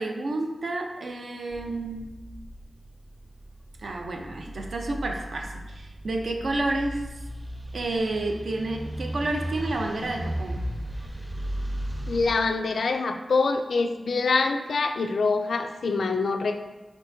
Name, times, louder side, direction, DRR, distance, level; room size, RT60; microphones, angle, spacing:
voice 1, 0.0-2.1 3.8-7.1 7.7-10.6, right 2 dB, 75° right, 2 dB, 0.5 m, -30 dB
sound 1, 1.5-12.3, equal, 25° right, 0.6 m, -36 dB
voice 2, 12.1-16.6, left 4 dB, 90° left, 6 dB, 0.3 m, -25 dB
4.6 x 4.4 x 2.6 m, 1.2 s
wide cardioid pair, 100°, 0 cm